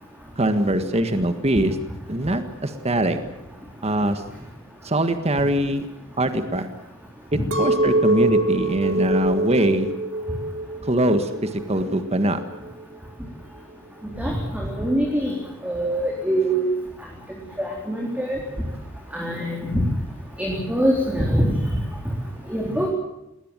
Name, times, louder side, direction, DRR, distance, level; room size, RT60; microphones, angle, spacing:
voice 1, 0.4-1.8 2.1-3.2 3.8-4.2 4.8-5.8 6.2-6.7 7.6-9.9 10.8-12.4, right 1 dB, 30° right, 8 dB, 1.6 m, -22 dB
Chink clink, 7.5-11.8 12.2-12.8, right 2 dB, 60° right, 2.1 m, -24 dB
voice 2, 14.2-15.3 15.6-16.7 17.6-18.4 19.1-19.8 20.4-21.6 22.5-22.9, right 1 dB, 5° right, -2 dB, 3.8 m, -23 dB
21.0 x 18.5 x 9.1 m, 0.90 s
head